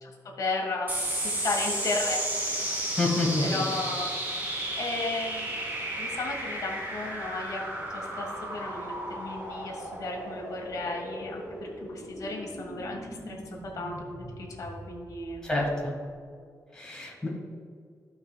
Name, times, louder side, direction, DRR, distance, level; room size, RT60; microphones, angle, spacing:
voice 1, 0.4-2.2 3.4-4.1 4.8-5.6 6.0-7.6 7.9-11.4 11.8-13.4 13.7-15.4, left 3 dB, 75° left, -1 dB, 1.8 m, -34 dB
sound 1, 0.9-15.7, right 1 dB, 30° right, 2.0 m, -34 dB
voice 2, 3.0-3.5 15.4-15.9 16.7-17.3, left 2 dB, 10° left, -4 dB, 1.9 m, -27 dB
15.5 x 5.3 x 2.4 m, 2.1 s
wide cardioid pair, 155°, 6 cm